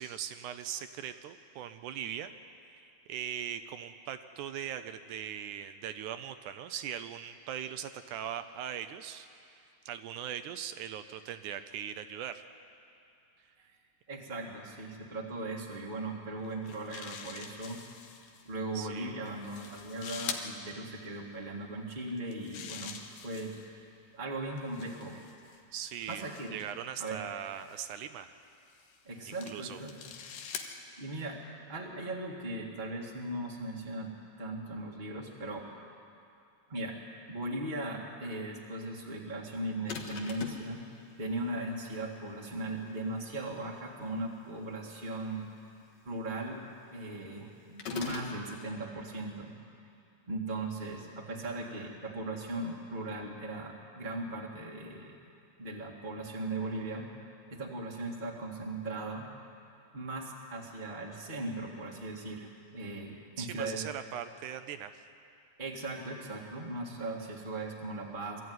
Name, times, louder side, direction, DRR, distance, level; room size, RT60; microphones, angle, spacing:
voice 1, 0.0-2.3 3.1-9.6 9.9-12.4 18.7-19.1 25.7-26.3 26.5-28.4 29.3-29.8 63.4-65.0, right 9 dB, 80° right, 10 dB, 1.9 m, -40 dB
voice 2, 14.1-17.8 18.4-23.0 23.2-23.6 24.1-25.2 26.1-26.5 27.0-27.2 29.0-30.1 30.7-34.1 34.4-35.7 36.7-40.8 41.2-45.5 46.0-46.6 46.9-49.5 50.3-55.2 55.6-57.1 57.5-59.3 59.9-63.8 65.6-68.4, right 2 dB, 25° right, -2 dB, 1.0 m, -38 dB
sound 1, 16.4-18.4 19.3-20.5 22.1-23.7 24.6-26.7 27.6-27.9 28.7-30.7, left 8 dB, 85° left, 3.0 m, -45 dB
sound 2, 39.9-40.7 47.8-48.4, left 6 dB, 55° left, 2.5 m, -39 dB
22.5 x 14.0 x 9.5 m, 2.6 s
omnidirectional pair, 4.0 m